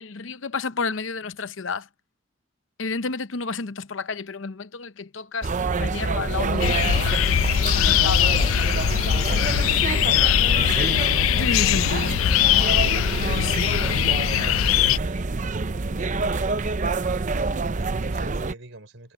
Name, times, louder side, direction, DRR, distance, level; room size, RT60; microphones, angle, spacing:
voice 1, 0.0-1.9 2.8-5.5 5.8-7.1 7.6-8.4 9.7-9.8 11.3-12.2 13.3-13.7, left 4 dB, 70° left, 0.8 m, -31 dB
sound 1, 5.4-18.5, right 3 dB, 40° right, 0.6 m, -27 dB
sound 2, 6.6-15.0, left 11 dB, 85° left, 0.3 m, -21 dB
voice 2, 9.9-10.3 11.3-12.0 13.5-15.3 15.9-16.6 17.4-19.1, right 2 dB, 70° right, 4.5 m, -43 dB
head